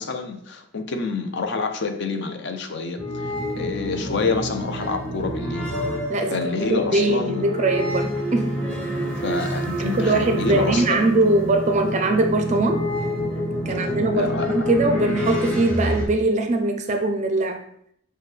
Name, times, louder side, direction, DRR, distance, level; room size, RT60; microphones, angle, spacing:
voice 1, 0.0-5.7 6.3-7.5 9.2-11.1 13.8-14.5, left 4 dB, 55° left, 6 dB, 0.5 m, -28 dB
sound 1, 3.0-16.1, equal, 5° left, 0.7 m, -28 dB
sound 2, 5.7-9.6, left 3 dB, 75° left, 1.6 m, -32 dB
voice 2, 6.1-8.6 9.8-12.9 13.7-17.6, right 2 dB, 35° right, 6 dB, 0.4 m, -22 dB
6.1 x 2.2 x 3.2 m, 0.68 s
head